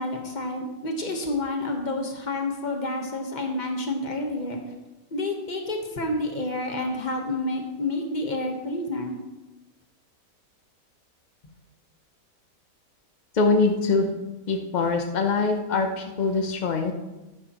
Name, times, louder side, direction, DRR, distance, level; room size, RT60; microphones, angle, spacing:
voice 1, 0.0-4.6 5.1-9.2, left 2 dB, 30° left, 3 dB, 1.1 m, -29 dB
voice 2, 13.3-14.1 14.5-16.9, left 4 dB, 75° left, 5 dB, 0.4 m, -23 dB
11.5 x 9.6 x 3.0 m, 1.1 s
omnidirectional pair, 1.8 m